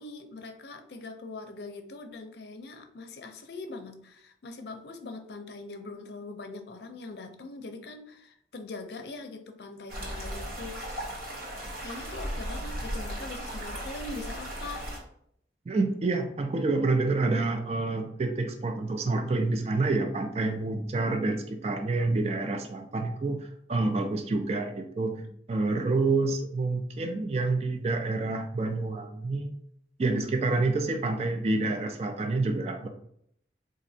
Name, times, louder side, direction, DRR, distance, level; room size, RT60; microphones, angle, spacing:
voice 1, 0.0-11.0 11.8-14.9 25.1-25.2, left 3 dB, 70° left, 6 dB, 0.5 m, -42 dB
sound 1, 9.9-15.0, equal, 55° right, 1.0 m, -36 dB
voice 2, 15.7-25.2 25.5-29.5 30.0-32.9, right 3 dB, 35° right, 5 dB, 0.3 m, -28 dB
4.1 x 2.5 x 2.7 m, 0.69 s
head